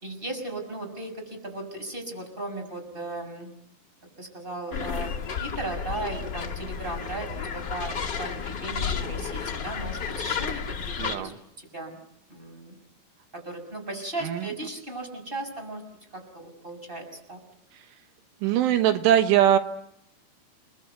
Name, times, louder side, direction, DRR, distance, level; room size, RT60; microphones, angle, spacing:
voice 1, 0.0-3.5 4.2-12.0 12.3-12.8 13.3-15.8 16.1-17.4, right 2 dB, 10° right, 5 dB, 6.1 m, -36 dB
sound 1, 4.7-11.2, left 6 dB, 80° left, 1.0 m, -32 dB
voice 2, 11.0-11.3 14.2-14.4 18.4-19.6, right 11 dB, 85° right, 8 dB, 3.8 m, -21 dB
30.0 x 21.5 x 8.0 m, 0.76 s
omnidirectional pair, 5.4 m